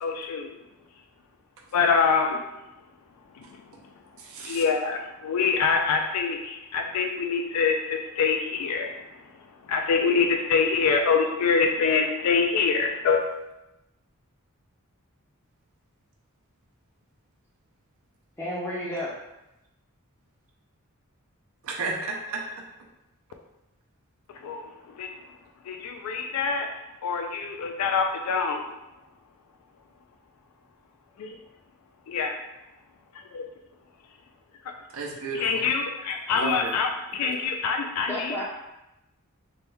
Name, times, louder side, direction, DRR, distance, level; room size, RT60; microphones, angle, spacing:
voice 1, 0.0-0.5 1.7-2.4 4.4-8.9 9.7-13.2 24.4-25.1 25.7-26.7 27.0-28.7 32.1-32.4 35.4-38.4, left 5 dB, 85° left, 3 dB, 0.3 m, -25 dB
voice 2, 4.2-4.6 21.6-22.4 34.9-35.7 36.3-36.7 37.2-37.3, right 3 dB, 70° right, -1 dB, 0.5 m, -33 dB
voice 3, 18.4-19.1 38.1-38.4, equal, 10° left, -8 dB, 0.5 m, -31 dB
3.3 x 2.2 x 3.0 m, 0.92 s
head